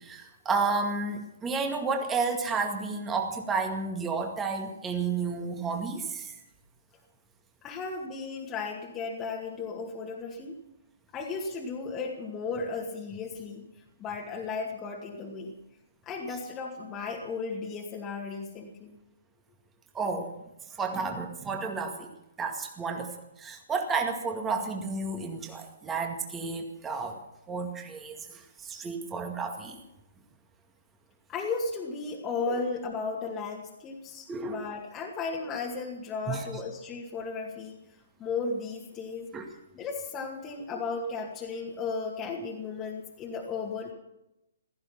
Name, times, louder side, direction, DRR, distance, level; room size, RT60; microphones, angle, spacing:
voice 1, 0.0-6.4 19.9-20.3 20.7-22.1 22.4-27.2 27.5-29.8 32.5-32.6 34.3-34.7 36.3-36.5 39.3-39.5, right 4 dB, 15° right, 3 dB, 2.1 m, -31 dB
voice 2, 7.6-10.6 11.1-13.6 14.0-15.6 16.0-19.0 31.3-37.8 38.2-39.3 39.7-43.9, left 4 dB, 20° left, -2 dB, 2.3 m, -35 dB
16.5 x 14.5 x 5.9 m, 0.90 s
figure-of-eight pair, 130°, 0 cm